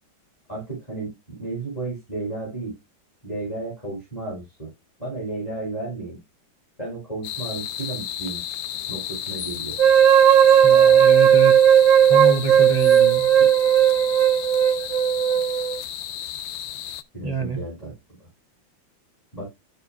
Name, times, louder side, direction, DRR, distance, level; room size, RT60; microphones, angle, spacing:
voice 1, 0.5-2.7 3.2-4.7 5.0-6.2 6.8-8.4 8.9-9.8 17.1-17.9 19.3-19.5, right 2 dB, 20° left, 5.4 m, -33 dB
sound 1, 7.2-17.0, left 11 dB, 70° left, 1.4 m, -33 dB
sound 2, 9.8-15.8, right 9 dB, 70° right, 1.4 m, -16 dB
voice 2, 10.6-11.6 12.1-13.3 17.2-17.6, right 4 dB, 20° right, 2.2 m, -26 dB
13.5 x 5.8 x 2.3 m
omnidirectional pair, 2.2 m